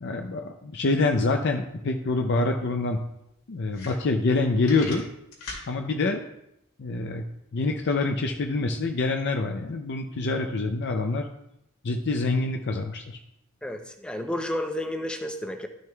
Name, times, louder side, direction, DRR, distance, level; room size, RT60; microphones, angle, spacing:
voice 1, 0.0-3.0 3.5-5.0 5.7-6.2 6.8-7.3 7.5-11.3 11.8-13.2, left 3 dB, 55° left, 4 dB, 0.5 m, -26 dB
sound 1, 2.3-2.4 2.7-2.8 3.3-3.4 3.7-4.4 4.6-5.7, left 3 dB, 90° left, 2.5 m, -38 dB
voice 2, 13.6-15.7, left 1 dB, 5° left, 5 dB, 0.6 m, -31 dB
12.0 x 6.2 x 2.3 m, 0.82 s
head